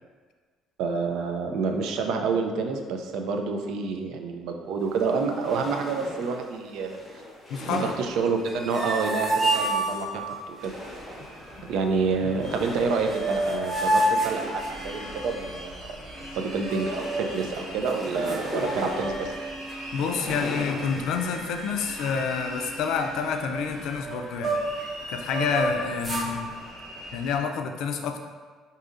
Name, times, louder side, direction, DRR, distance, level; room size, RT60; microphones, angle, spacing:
voice 1, 0.8-7.2 7.7-10.7 11.6-15.8 16.3-19.3, right 4 dB, 70° right, 4 dB, 0.4 m, -28 dB
sound 1, 4.9-11.8 12.2-13.5 13.9-16.1 16.4-19.6 19.9-21.7, left 1 dB, 10° left, 1.0 m, -40 dB
voice 2, 7.5-7.9 12.2-12.3 19.9-24.6 25.1-26.5 27.1-28.2, left 6 dB, 70° left, 5 dB, 0.3 m, -28 dB
sound 2, 8.4-10.4 12.6-12.7 12.9-15.2 16.5-17.3 17.9-18.0 18.3-19.4 19.7-20.0 20.6-21.2 21.5-21.7 22.0-24.8 25.2-26.3, right 2 dB, 20° right, 0.6 m, -29 dB
sound 3, 10.6-27.4, right 1 dB, 90° right, 1.0 m, -41 dB
4.8 x 2.7 x 2.5 m, 1.5 s
cardioid pair, 150°, 0 cm